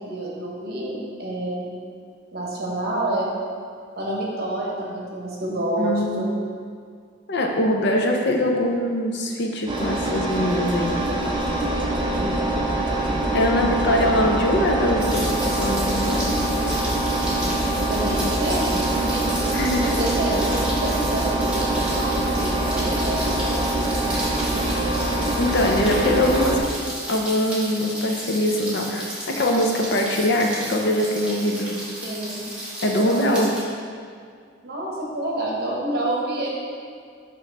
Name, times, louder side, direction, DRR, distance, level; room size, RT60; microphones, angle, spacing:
voice 1, 0.0-1.7 2.3-3.3 4.0-6.3 17.9-19.2 19.8-23.7 32.0-32.4 32.9-33.5 34.6-36.5, right 1 dB, 55° right, -3 dB, 1.2 m, -28 dB
voice 2, 5.8-6.2 7.3-11.4 13.3-16.3 19.5-19.9 25.4-26.6 27.1-31.8 32.8-33.5, left 1 dB, 60° left, 2 dB, 0.6 m, -22 dB
Engine, 9.7-26.6, right 1 dB, 25° right, 0.6 m, -24 dB
Rain, 15.0-33.6, right 1 dB, 5° right, 1.2 m, -33 dB
5.9 x 3.1 x 5.4 m, 2.1 s
head